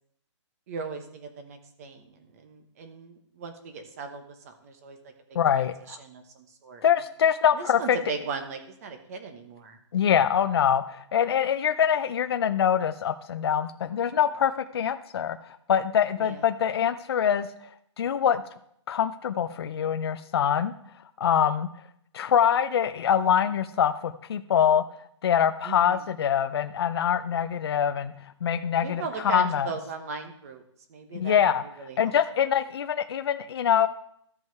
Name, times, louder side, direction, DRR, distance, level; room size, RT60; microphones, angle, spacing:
voice 1, 0.7-5.0 5.3-5.4 5.9-6.8 7.5-9.8 16.2-16.4 25.6-26.1 28.8-30.6 30.9-32.1, right 5 dB, 30° right, 6 dB, 1.1 m, -38 dB
voice 2, 5.3-6.0 6.8-8.0 9.9-17.5 18.0-18.4 18.9-20.7 21.2-21.7 22.1-24.8 25.2-28.1 28.4-29.7 31.1-31.6 32.0-33.9, left 8 dB, 55° left, 9 dB, 0.5 m, -24 dB
13.5 x 5.5 x 4.6 m, 0.72 s
hypercardioid pair, 170°, 16 cm